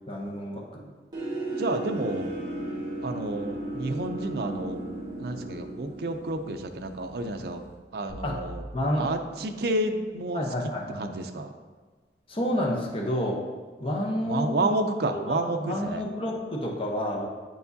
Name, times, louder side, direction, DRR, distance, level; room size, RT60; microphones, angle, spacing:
voice 1, 0.1-0.9 8.2-8.4 8.7-9.1 10.3-11.0 12.3-13.4 13.8-14.7 15.1-17.3, left 1 dB, 30° left, -1 dB, 0.7 m, -29 dB
sound 1, 1.1-7.7, right 2 dB, 25° right, 1.5 m, -36 dB
voice 2, 1.6-2.3 3.0-4.8 5.2-7.6 7.9-8.6 9.0-10.4 10.9-11.5 14.3-16.0, right 2 dB, 60° right, 6 dB, 0.5 m, -30 dB
sound 2, 8.1-10.2, right 1 dB, 55° left, 1.9 m, -44 dB
8.2 x 4.7 x 2.7 m, 1.4 s
head